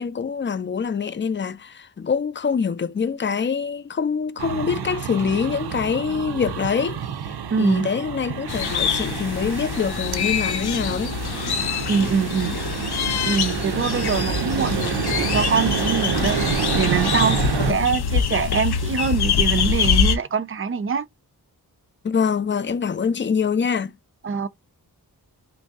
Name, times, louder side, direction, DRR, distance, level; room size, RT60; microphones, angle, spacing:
voice 1, 0.0-11.2 17.6-17.9 22.0-23.9, left 6 dB, 30° left, 0.4 m, -25 dB
sound 1, 4.4-17.7, right 8 dB, 90° right, 0.5 m, -28 dB
voice 2, 7.5-7.9 11.9-12.5 13.2-16.4 16.7-21.1 24.2-24.5, right 6 dB, 35° right, 0.4 m, -24 dB
sound 2, 8.5-20.2, left 7 dB, 80° left, 0.6 m, -24 dB
3.1 x 2.7 x 3.4 m
wide cardioid pair, 75°, 38 cm